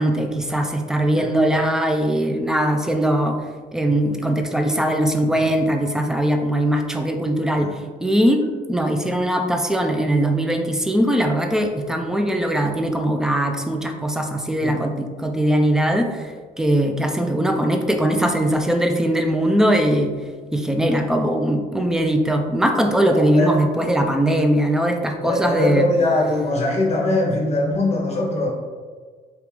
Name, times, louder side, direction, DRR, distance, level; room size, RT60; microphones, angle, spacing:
voice 1, 0.0-3.4 3.7-7.7 8.0-8.4 8.7-16.2 16.6-20.1 20.5-25.9, right 1 dB, 5° right, 4 dB, 0.4 m, -20 dB
voice 2, 23.0-23.5 25.2-28.5, left 2 dB, 40° left, -2 dB, 0.9 m, -22 dB
3.5 x 2.9 x 3.2 m, 1.5 s
cardioid pair, 110°, 17 cm